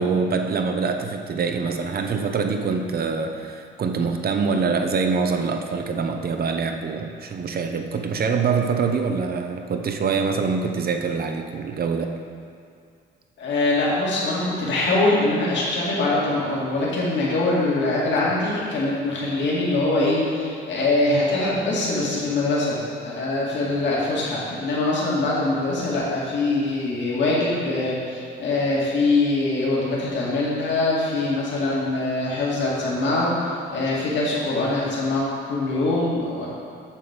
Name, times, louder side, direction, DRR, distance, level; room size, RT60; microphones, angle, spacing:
voice 1, 0.0-12.1, right 5 dB, 50° right, 5 dB, 0.8 m, -24 dB
voice 2, 13.4-22.8 23.0-36.5, left 2 dB, 70° left, -6 dB, 2.2 m, -23 dB
7.5 x 6.8 x 5.2 m, 2.3 s
cardioid pair, 90°, 20 cm